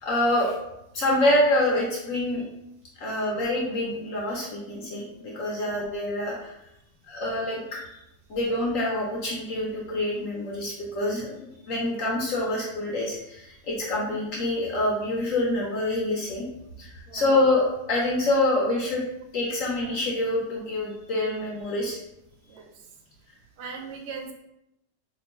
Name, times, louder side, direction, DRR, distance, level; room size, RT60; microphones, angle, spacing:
voice 1, 0.0-0.6 0.9-2.4 3.0-6.5 7.1-7.8 8.3-11.4 11.7-16.5 16.8-19.0 19.3-22.0, left 1 dB, 65° left, -3 dB, 0.9 m, -26 dB
voice 2, 23.6-24.3, right 5 dB, 75° right, 2 dB, 1.1 m, -39 dB
2.9 x 2.1 x 4.1 m, 0.85 s
omnidirectional pair, 1.8 m